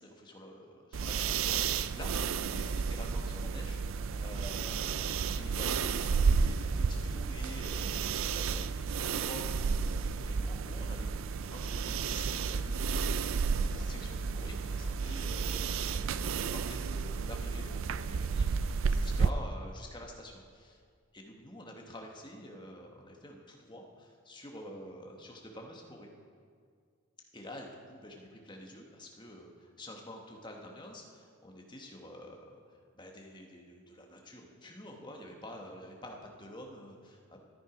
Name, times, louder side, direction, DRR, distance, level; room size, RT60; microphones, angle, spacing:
voice 1, 0.0-11.1 11.5-20.8 21.1-26.1 27.3-37.4, left 1 dB, 20° left, 1 dB, 1.2 m, -48 dB
sound 1, 0.9-19.3, right 5 dB, 60° right, 0.4 m, -32 dB
13.0 x 10.0 x 5.0 m, 2.1 s
head